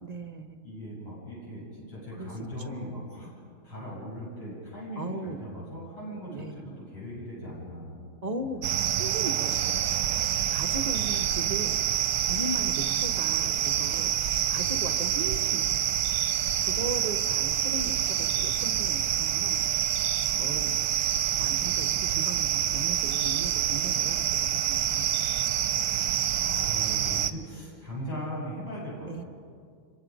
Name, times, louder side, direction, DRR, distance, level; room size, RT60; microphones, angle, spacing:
voice 1, 0.0-0.6 2.2-2.3 2.6-2.9 5.0-5.4 6.3-6.6 8.2-11.8 12.2-14.2 14.5-16.0 16.7-19.6 20.3-20.7 21.4-25.2 29.1-29.2, right 2 dB, 45° right, 4 dB, 0.5 m, -38 dB
voice 2, 0.6-3.3 3.6-8.5 26.4-29.1, equal, 75° left, -7 dB, 8.4 m, -39 dB
sound 1, 8.6-27.3, right 10 dB, 65° right, 1.2 m, -27 dB
26.5 x 23.0 x 5.2 m, 2.2 s
omnidirectional pair, 2.3 m